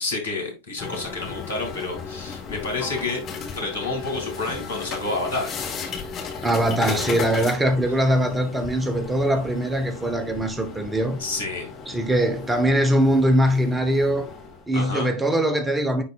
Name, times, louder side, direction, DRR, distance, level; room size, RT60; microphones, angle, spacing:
voice 1, 0.0-3.2 3.6-5.5 7.9-8.0 11.2-11.7 14.7-15.1, left 3 dB, 70° left, 2.5 m, -29 dB
sound 1, 0.8-14.7, left 5 dB, 30° left, 1.6 m, -35 dB
voice 2, 6.4-11.2 11.9-14.3 14.7-16.0, right 1 dB, 10° right, 0.9 m, -22 dB
9.7 x 4.1 x 2.4 m
figure-of-eight pair, 90°, 0 cm